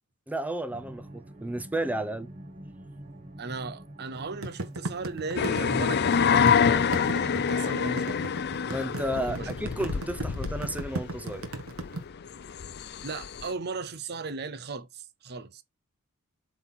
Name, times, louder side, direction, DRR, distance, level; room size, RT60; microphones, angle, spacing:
voice 1, 0.3-2.3 8.7-11.4, right 1 dB, 5° right, 0.7 m, -32 dB
sound 1, 0.7-10.1, right 1 dB, 30° right, 2.3 m, -45 dB
voice 2, 3.4-8.2 9.1-9.6 13.0-15.6, right 4 dB, 50° right, 0.8 m, -37 dB
sound 2, 4.4-12.0, right 2 dB, 70° right, 1.5 m, -35 dB
sound 3, 5.4-13.5, left 6 dB, 50° left, 0.5 m, -27 dB
7.9 x 4.2 x 4.2 m
head